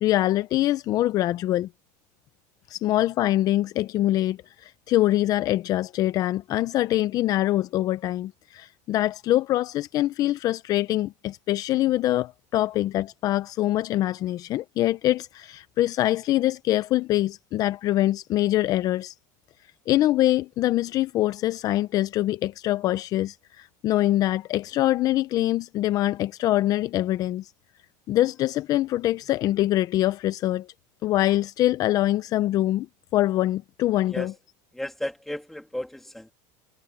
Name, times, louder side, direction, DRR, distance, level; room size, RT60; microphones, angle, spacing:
voice 1, 0.0-1.7 2.7-19.1 19.9-27.5 28.1-30.7 31.0-32.9 33.1-34.3, left 14 dB, 40° left, 0.6 m, -24 dB
voice 2, 34.0-34.3 34.7-36.3, left 1 dB, 5° left, 2.8 m, -34 dB
supercardioid pair, 135°, 9 cm